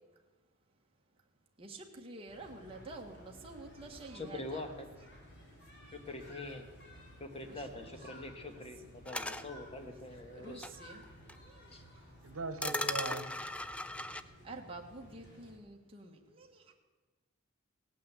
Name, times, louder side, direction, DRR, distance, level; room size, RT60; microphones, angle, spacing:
voice 1, 1.6-4.7 7.4-7.6 7.9-8.2 10.3-11.0 11.4-12.0 14.4-16.7, right 2 dB, 25° right, 1.6 m, -49 dB
sound 1, 2.3-15.6, left 1 dB, 55° left, 3.1 m, -55 dB
voice 2, 4.1-4.9 5.9-6.7 7.2-10.7 11.7-11.8, left 2 dB, 30° left, 1.6 m, -44 dB
sound 2, 9.1-9.4 10.6-10.7 11.3-11.4 12.6-14.2, left 1 dB, 5° left, 0.5 m, -37 dB
voice 3, 12.2-13.3, right 3 dB, 70° right, 1.4 m, -40 dB
17.0 x 9.2 x 8.2 m
head